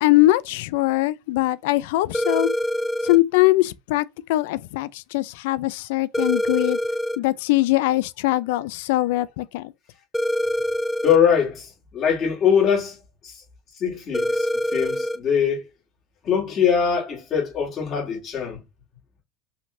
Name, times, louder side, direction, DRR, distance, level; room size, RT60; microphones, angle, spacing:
voice 1, 0.0-2.5 3.0-6.8 7.2-9.7, left 17 dB, 85° left, 0.4 m, -21 dB
sound 1, 2.1-3.2 6.1-7.2 10.1-11.2 14.1-15.2, equal, 5° left, 0.3 m, -24 dB
voice 2, 11.0-13.0 13.2-13.4 13.8-15.6 16.2-18.6, left 7 dB, 40° left, 2.6 m, -22 dB
5.7 x 3.3 x 2.7 m
supercardioid pair, 125°, 0 cm